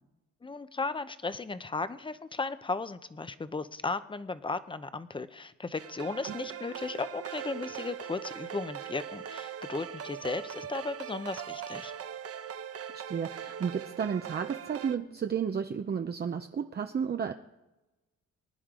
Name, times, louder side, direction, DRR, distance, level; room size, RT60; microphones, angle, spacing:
voice 1, 0.4-11.9, left 3 dB, 15° left, 12 dB, 0.8 m, -35 dB
sound 1, 5.8-14.9, right 9 dB, 50° right, 0.9 m, -41 dB
voice 2, 12.9-17.3, right 7 dB, 35° right, 6 dB, 0.7 m, -32 dB
24.0 x 10.0 x 3.8 m, 1.0 s
cardioid pair, 90°, 30 cm